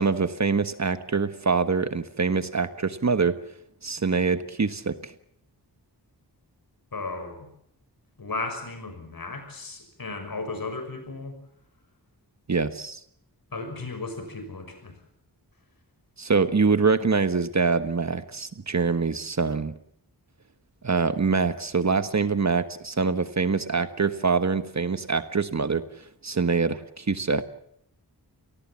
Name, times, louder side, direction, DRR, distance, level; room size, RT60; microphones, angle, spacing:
voice 1, 0.0-3.4 3.8-5.1 12.5-13.0 16.2-19.7 20.8-25.9 26.2-27.4, right 4 dB, 45° right, 12 dB, 1.3 m, -24 dB
voice 2, 6.9-7.5 8.2-11.4 13.5-14.9, left 3 dB, 60° left, 8 dB, 6.2 m, -35 dB
28.0 x 19.5 x 7.3 m, 0.69 s
wide cardioid pair, 90°, 40 cm